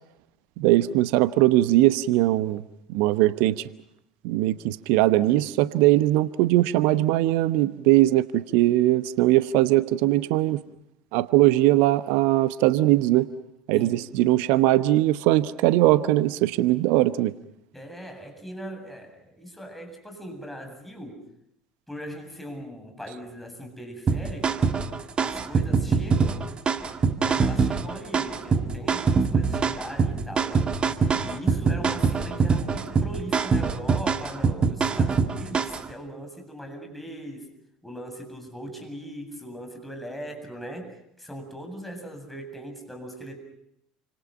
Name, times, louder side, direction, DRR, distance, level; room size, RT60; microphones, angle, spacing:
voice 1, 0.6-2.6 2.9-3.7 4.2-10.6 11.1-13.3 13.7-17.3, right 16 dB, 60° right, 15 dB, 1.0 m, -20 dB
voice 2, 17.7-21.2 21.9-24.6 25.2-26.5 27.2-30.7 31.2-37.5 37.8-43.4, equal, 5° left, 4 dB, 7.8 m, -39 dB
sound 1, 24.1-35.9, right 5 dB, 30° right, 2.0 m, -24 dB
29.0 x 26.0 x 5.7 m, 0.77 s
figure-of-eight pair, 65°, 3 cm